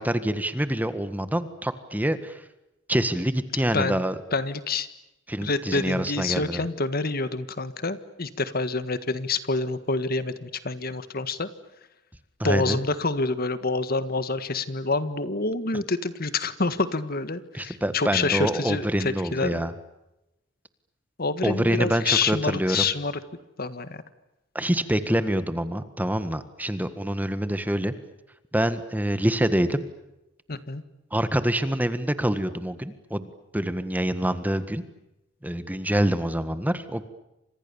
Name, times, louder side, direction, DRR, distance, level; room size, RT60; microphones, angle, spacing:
voice 1, 0.0-2.4 2.9-4.1 5.3-6.7 12.4-12.8 17.5-19.7 21.4-22.9 24.5-27.9 28.5-29.8 31.1-34.8 35.4-37.0, right 1 dB, 10° right, 11 dB, 1.6 m, -26 dB
voice 2, 4.3-4.9 5.4-11.5 12.4-19.6 21.2-23.2 23.6-24.0 30.5-30.8, left 3 dB, 50° left, 12 dB, 1.7 m, -27 dB
29.5 x 26.5 x 7.1 m, 0.92 s
head